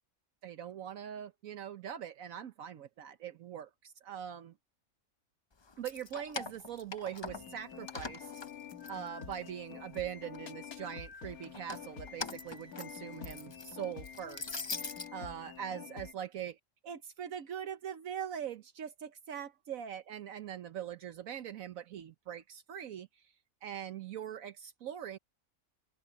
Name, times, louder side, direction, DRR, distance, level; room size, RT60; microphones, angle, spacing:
voice 1, 0.4-4.5 5.8-8.3 8.9-16.6 16.8-23.1 23.6-25.2, right 9 dB, 70° right, 1.2 m, -42 dB
Keys jangling, 5.7-7.6 7.9-9.5 9.9-10.7 11.4-15.1, left 4 dB, 30° left, 0.5 m, -43 dB
sound 1, 7.2-16.1, left 7 dB, 90° left, 2.0 m, -48 dB
open air
omnidirectional pair, 1.5 m